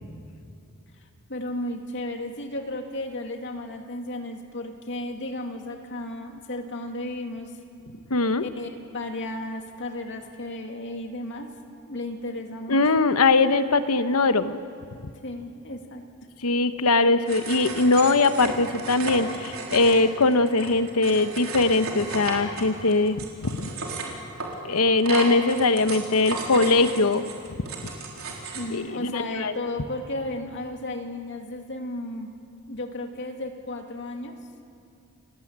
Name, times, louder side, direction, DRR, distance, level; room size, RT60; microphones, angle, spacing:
voice 1, 1.3-7.5 8.4-11.5 11.8-12.8 15.2-16.0 28.5-32.3 32.7-34.4, left 1 dB, 55° left, 3 dB, 2.5 m, -34 dB
voice 2, 8.1-8.4 12.7-14.6 16.4-23.7 24.6-27.2 28.7-29.5, left 3 dB, 90° left, 10 dB, 1.1 m, -21 dB
sound 1, 17.3-28.7, right 3 dB, 75° right, 4.1 m, -34 dB
29.5 x 17.5 x 8.9 m, 2.6 s
head